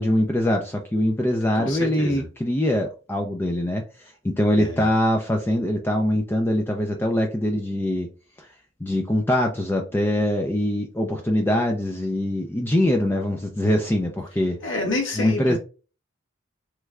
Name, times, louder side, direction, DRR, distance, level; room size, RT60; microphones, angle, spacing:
voice 1, 0.0-8.1 8.4-8.5 8.8-14.6 15.2-15.6, left 1 dB, 10° left, 3 dB, 0.3 m, -23 dB
voice 2, 1.5-2.2 4.6-4.8 14.6-15.6, left 2 dB, 70° left, -1 dB, 1.4 m, -28 dB
3.1 x 2.2 x 3.5 m, 0.34 s
head